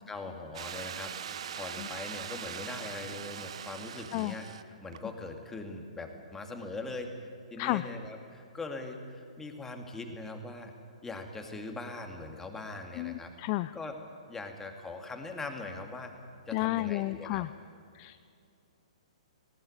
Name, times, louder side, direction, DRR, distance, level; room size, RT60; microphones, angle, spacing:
voice 1, 0.1-1.1 1.6-4.5 4.8-7.1 7.5-10.7 11.0-13.3 13.7-14.0 14.3-16.1 16.5-17.4, left 3 dB, 10° left, 4 dB, 2.4 m, -41 dB
sound 1, 0.5-4.6 4.9-5.0, right 8 dB, 60° right, 1.0 m, -41 dB
voice 2, 13.0-13.7 16.5-17.5 17.9-18.2, left 19 dB, 35° left, 13 dB, 0.5 m, -32 dB
19.0 x 18.0 x 9.7 m, 2.5 s
figure-of-eight pair, 120°, 4 cm